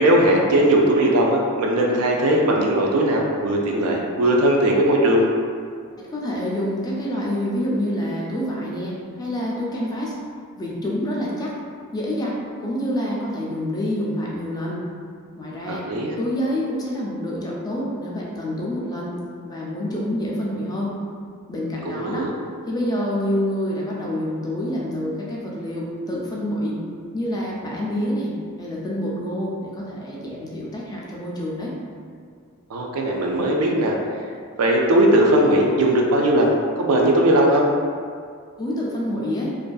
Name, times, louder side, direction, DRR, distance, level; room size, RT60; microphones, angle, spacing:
voice 1, 0.0-5.2 15.7-16.2 21.9-22.3 32.7-34.0 34.6-36.5 36.8-37.7, right 1 dB, 75° right, -1 dB, 0.4 m, -18 dB
voice 2, 6.1-10.1 10.6-11.5 11.9-14.8 15.4-15.9 16.2-19.2 19.4-21.0 21.5-22.3 22.7-26.8 27.1-31.7 38.6-39.5, equal, 20° left, -5 dB, 0.3 m, -27 dB
2.5 x 2.2 x 2.3 m, 2.2 s
head